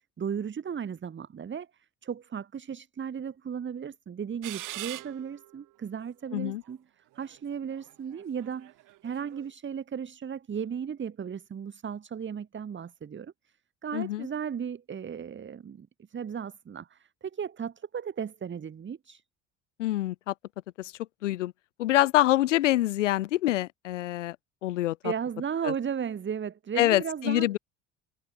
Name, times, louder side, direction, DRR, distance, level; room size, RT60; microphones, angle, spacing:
voice 1, 0.2-8.7 9.0-13.5 13.8-19.2 25.0-27.6, right 7 dB, 30° right, 1.7 m, -35 dB
sound 1, 4.4-5.6 6.3-6.4 7.2-9.5, right 18 dB, 60° right, 1.7 m, -42 dB
voice 2, 13.9-14.3 19.8-20.3 20.8-20.9 21.2-21.5 21.8-24.4 24.6-25.1 25.6-25.7 26.8-27.6, left 15 dB, 85° left, 0.7 m, -25 dB
hypercardioid pair, 60°, 36 cm